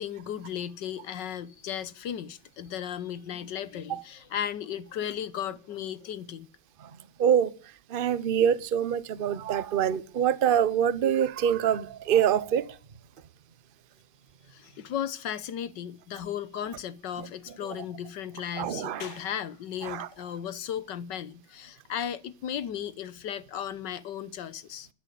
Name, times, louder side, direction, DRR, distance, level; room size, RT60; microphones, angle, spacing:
voice 1, 0.0-6.5 14.5-24.9, left 9 dB, 65° left, 1.5 m, -35 dB
voice 2, 7.2-7.5 7.9-12.7 18.6-19.1 19.9-20.1, right 9 dB, 45° right, 0.7 m, -25 dB
12.5 x 11.0 x 8.3 m
omnidirectional pair, 2.1 m